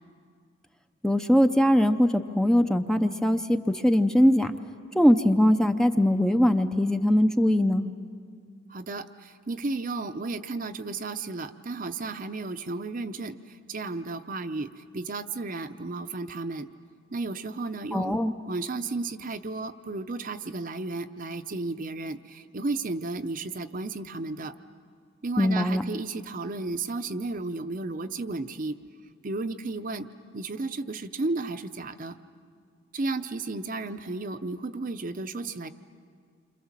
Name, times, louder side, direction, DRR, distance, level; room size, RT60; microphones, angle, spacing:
voice 1, 1.0-4.5 4.9-7.9 17.9-18.3 25.4-25.8, equal, 5° left, 7 dB, 0.6 m, -21 dB
voice 2, 8.7-16.7 17.1-18.2 18.5-24.5 25.2-28.7 29.2-30.1 30.3-32.2 32.9-35.7, right 3 dB, 45° right, 9 dB, 0.7 m, -33 dB
28.5 x 26.0 x 7.4 m, 2.1 s
head